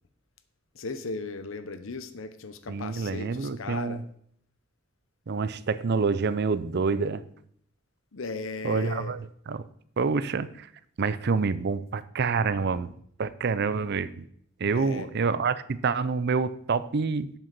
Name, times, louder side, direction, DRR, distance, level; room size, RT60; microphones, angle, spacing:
voice 1, 0.7-4.0 8.1-9.2 14.7-15.1, left 3 dB, 80° left, 10 dB, 0.8 m, -36 dB
voice 2, 2.7-4.0 5.3-7.2 8.6-9.6 10.0-10.7 11.0-12.9 13.2-14.2 14.6-17.3, right 4 dB, 55° right, 15 dB, 0.5 m, -27 dB
8.1 x 7.6 x 6.0 m, 0.66 s
head